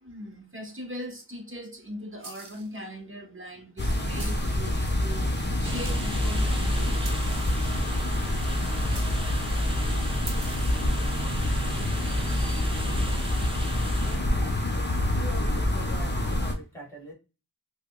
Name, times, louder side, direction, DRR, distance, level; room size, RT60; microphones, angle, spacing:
voice 1, 0.0-5.3 5.6-7.0 12.0-12.7, equal, 30° right, 1.0 m, -40 dB
sound 1, 2.2-2.8 4.2-4.6 5.4-5.5 5.8-6.5 7.0-7.9 8.9-9.4 10.3-10.9, right 4 dB, 90° right, 0.8 m, -44 dB
sound 2, 3.8-16.5, left 1 dB, 25° left, 0.8 m, -26 dB
sound 3, 5.6-14.2, right 1 dB, 15° right, 0.7 m, -40 dB
voice 2, 15.0-17.1, equal, 5° left, 2.0 m, -42 dB
5.1 x 2.1 x 2.2 m
wide cardioid pair, 45°, 39 cm